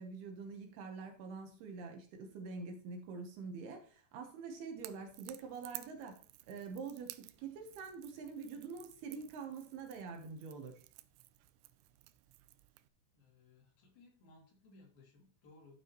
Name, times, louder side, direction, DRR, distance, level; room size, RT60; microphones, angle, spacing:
voice 1, 0.0-10.8, right 5 dB, 70° right, 4 dB, 2.8 m, -46 dB
Crackle / Crack, 4.8-12.9, right 18 dB, 90° right, 2.9 m, -54 dB
voice 2, 13.1-15.8, left 2 dB, 60° left, -1 dB, 4.2 m, -62 dB
12.5 x 7.6 x 3.0 m, 0.41 s
omnidirectional pair, 5.1 m